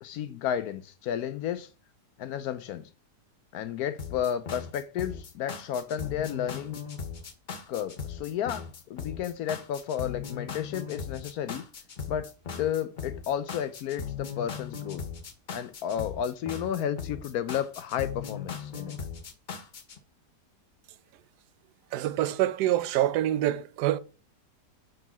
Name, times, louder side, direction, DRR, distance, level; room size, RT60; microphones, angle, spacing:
voice 1, 0.0-1.7 2.2-2.9 3.5-6.8 7.7-11.6 12.1-12.3 12.6-15.0 15.5-19.0, left 9 dB, 70° left, 1.0 m, -32 dB
sound 1, 4.0-20.0, left 6 dB, 50° left, 0.5 m, -38 dB
voice 2, 21.9-24.0, right 13 dB, 75° right, 1.1 m, -26 dB
6.1 x 3.9 x 6.0 m
omnidirectional pair, 1.8 m